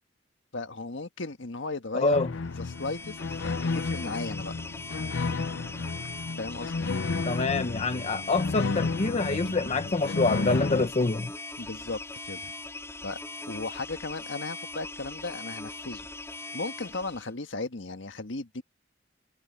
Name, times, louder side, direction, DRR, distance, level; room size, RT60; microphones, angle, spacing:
voice 1, 0.5-2.2 2.6-4.5 6.4-6.9 11.6-12.5 13.0-13.2 13.5-16.1 16.5-18.6, left 3 dB, 75° left, 1.6 m, -36 dB
voice 2, 1.9-2.3 7.2-11.3, left 3 dB, 35° left, 0.8 m, -26 dB
sound 1, 2.1-10.9, left 3 dB, 90° left, 0.7 m, -32 dB
sound 2, 2.5-17.3, left 2 dB, 15° left, 3.8 m, -41 dB
head